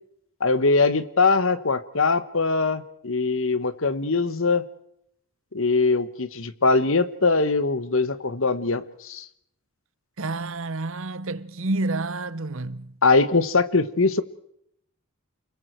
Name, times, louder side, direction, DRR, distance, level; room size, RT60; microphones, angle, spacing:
voice 1, 0.4-4.7 5.5-9.2 13.0-14.2, left 3 dB, 65° left, 1.3 m, -22 dB
voice 2, 10.2-12.9, right 2 dB, 65° right, 1.0 m, -29 dB
29.5 x 22.0 x 4.6 m
head